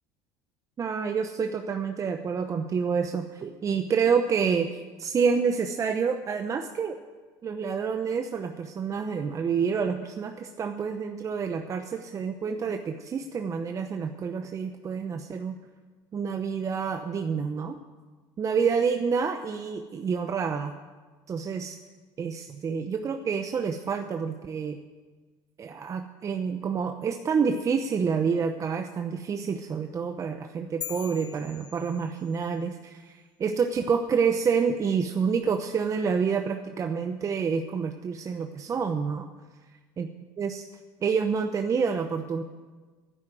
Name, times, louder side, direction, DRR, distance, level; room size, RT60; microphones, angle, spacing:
voice 1, 0.8-7.0 7.4-15.6 16.1-17.8 18.4-20.7 21.3-21.8 22.2-24.8 25.6-39.3 40.0-40.1 40.4-40.6 41.0-42.4, right 6 dB, 35° right, 6 dB, 0.8 m, -28 dB
sound 1, 30.8-32.5, left 10 dB, 45° left, 1.1 m, -41 dB
11.5 x 10.0 x 9.1 m, 1.4 s
supercardioid pair, 95°, 10 cm